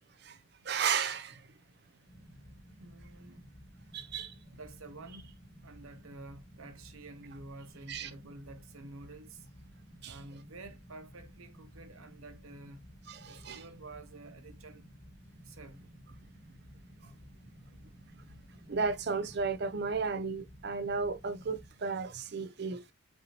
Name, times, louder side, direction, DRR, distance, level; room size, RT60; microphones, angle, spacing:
voice 1, 0.7-1.4 3.9-4.3 7.9-8.1 10.0-10.2 13.1-13.6 18.7-22.8, right 5 dB, 50° right, 0.5 m, -34 dB
sound 1, 2.0-21.7, equal, 10° left, 1.1 m, -54 dB
voice 2, 2.8-3.5 4.5-5.4 5.6-9.5 10.0-12.8 13.3-14.9 15.4-15.9, right 2 dB, 90° right, 0.9 m, -50 dB
5.4 x 2.8 x 2.9 m
head